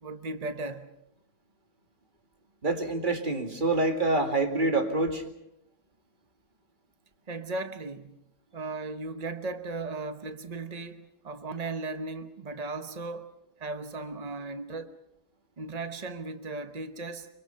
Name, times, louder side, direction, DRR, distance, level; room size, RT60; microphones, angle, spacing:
voice 1, 0.0-0.9 7.3-8.2 8.5-13.3 13.6-14.9 15.6-17.3, right 3 dB, 65° right, 0.4 m, -36 dB
voice 2, 2.6-5.2, right 2 dB, 25° right, 2.2 m, -26 dB
25.5 x 24.5 x 5.6 m
omnidirectional pair, 2.3 m